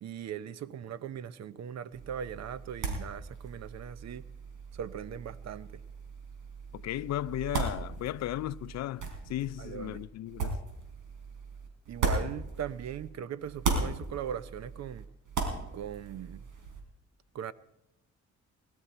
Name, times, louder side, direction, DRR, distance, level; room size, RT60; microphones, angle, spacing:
voice 1, 0.0-4.2 4.7-5.7 9.6-10.0 11.9-15.1 15.7-16.5 17.3-17.5, right 9 dB, 60° right, 0.8 m, -39 dB
sound 1, 1.9-13.1 13.4-16.8, right 4 dB, 90° right, 3.9 m, -37 dB
voice 2, 6.7-10.6, left 14 dB, 60° left, 0.5 m, -35 dB
21.5 x 12.5 x 4.4 m
cardioid pair, 90°, 30 cm